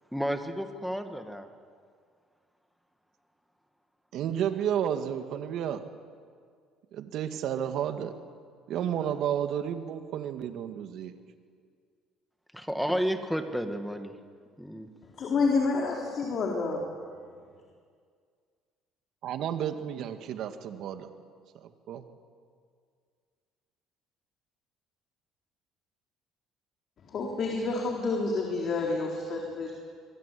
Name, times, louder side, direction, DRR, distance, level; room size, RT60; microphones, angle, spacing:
voice 1, 0.1-1.5 12.5-14.1 14.6-14.9, equal, ahead, 6 dB, 2.0 m, -31 dB
voice 2, 4.1-5.8 6.9-8.1 8.7-11.1 19.2-21.1 21.9-22.0, right 9 dB, 65° right, 7 dB, 2.0 m, -31 dB
voice 3, 15.2-16.9 27.1-29.7, left 3 dB, 45° left, 0 dB, 4.0 m, -28 dB
25.5 x 22.5 x 8.5 m, 2.1 s
cardioid pair, 115°, 0 cm